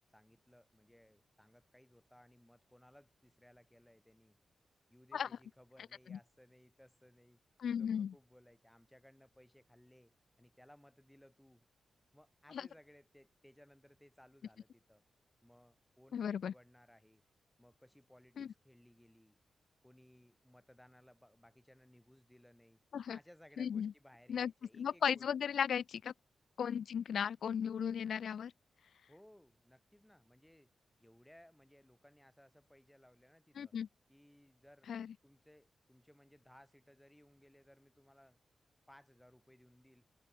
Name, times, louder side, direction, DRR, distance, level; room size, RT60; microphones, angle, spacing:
voice 1, 0.1-4.4 4.9-7.4 7.8-11.7 12.1-15.0 15.4-17.2 17.6-19.4 19.8-22.8 23.1-25.5 29.1-30.7 31.0-33.8 34.1-34.9 35.2-38.4 38.9-40.1, equal, 5° left, 5.2 m, -63 dB
voice 2, 7.6-8.1 12.5-12.6 16.1-16.5 18.4-18.5 22.9-23.2 23.6-23.9 24.3-24.5 24.8-26.1 26.6-28.5 33.6-33.9 34.9-35.1, left 8 dB, 75° left, 0.6 m, -36 dB
cardioid pair, 75°, 0 cm